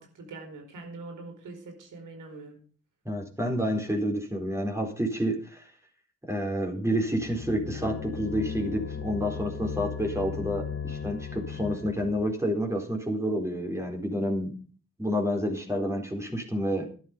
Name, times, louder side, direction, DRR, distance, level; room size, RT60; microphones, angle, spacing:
voice 1, 0.0-2.6, right 3 dB, 80° right, 4 dB, 4.6 m, -43 dB
voice 2, 3.0-5.7 6.3-14.5 15.0-16.9, equal, 10° right, 2 dB, 4.3 m, -29 dB
sound 1, 7.1-12.3, left 7 dB, 45° left, 1.5 m, -36 dB
12.0 x 11.5 x 5.2 m, 0.40 s
cardioid pair, 75°, 31 cm